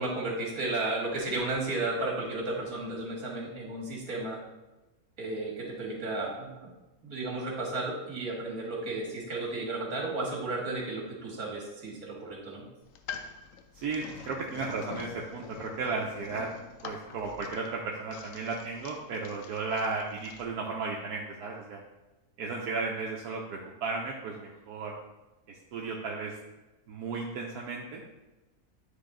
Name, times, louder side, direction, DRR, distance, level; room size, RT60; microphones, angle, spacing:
voice 1, 0.0-4.4 5.2-6.6 7.0-12.7, right 2 dB, 70° right, -3 dB, 2.2 m, -33 dB
sound 1, 12.8-20.5, left 7 dB, 70° left, 0.9 m, -46 dB
voice 2, 13.7-16.5 16.8-21.8 22.4-25.0 25.5-26.3 26.9-28.0, right 4 dB, 90° right, -1 dB, 1.3 m, -34 dB
9.5 x 3.4 x 3.8 m, 1.1 s
omnidirectional pair, 1.6 m